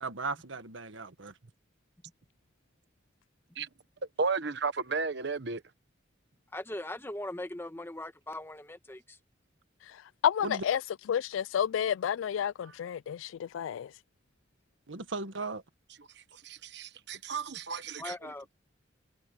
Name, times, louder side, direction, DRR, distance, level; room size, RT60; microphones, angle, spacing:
voice 1, 0.0-1.3 10.4-10.6 14.9-15.6, right 3 dB, 85° right, 1.5 m, -37 dB
voice 2, 4.2-5.6 12.6-12.7 16.2-18.3, right 4 dB, 60° right, 1.2 m, -34 dB
voice 3, 6.5-9.2 18.0-18.5, left 1 dB, 10° left, 1.2 m, -40 dB
voice 4, 10.2-10.8 11.1-13.9, left 9 dB, 90° left, 0.3 m, -30 dB
head